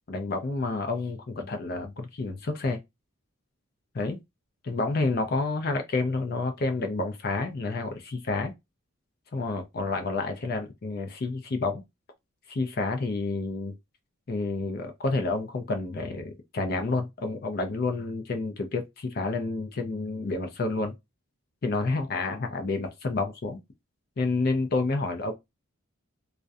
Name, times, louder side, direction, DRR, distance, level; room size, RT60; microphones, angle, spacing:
voice 1, 0.1-2.8 3.9-4.2 4.6-8.5 9.3-11.8 12.5-13.7 14.3-20.9 21.6-23.6 24.2-25.3, left 3 dB, 45° left, 0.4 m, -29 dB
2.4 x 2.1 x 2.5 m
head